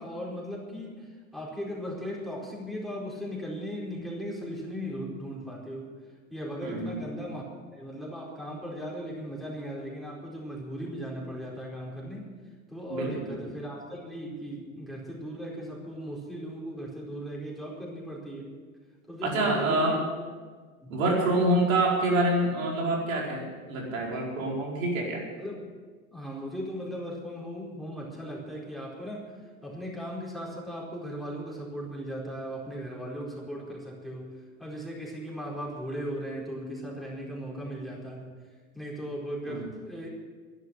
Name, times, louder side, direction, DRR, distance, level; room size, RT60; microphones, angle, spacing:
voice 1, 0.0-6.0 6.3-7.4 7.7-12.3 12.7-18.5 19.1-20.0 20.8-21.0 25.4-25.6 26.1-29.3 29.6-38.3 38.7-40.1, equal, ahead, -3 dB, 4.5 m, -37 dB
voice 2, 6.6-6.9 12.9-13.3 19.2-19.9 20.9-25.2 39.5-39.7, right 1 dB, 70° right, -2 dB, 4.9 m, -26 dB
12.0 x 11.0 x 9.2 m, 1.5 s
hypercardioid pair, 95°, 41 cm